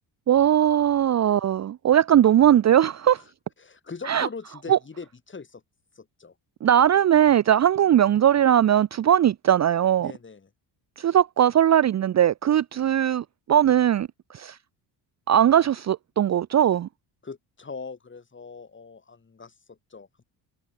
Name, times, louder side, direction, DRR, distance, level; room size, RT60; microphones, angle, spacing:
voice 1, 0.3-3.2 4.1-4.3 4.7-4.8 6.6-10.1 11.0-14.1 14.3-14.6 15.3-16.9, right 10 dB, 35° right, 0.7 m, -19 dB
voice 2, 3.6-5.6 5.9-6.3 10.0-10.5 17.2-20.2, left 4 dB, 25° left, 4.8 m, -41 dB
open air
cardioid pair, 105°, 46 cm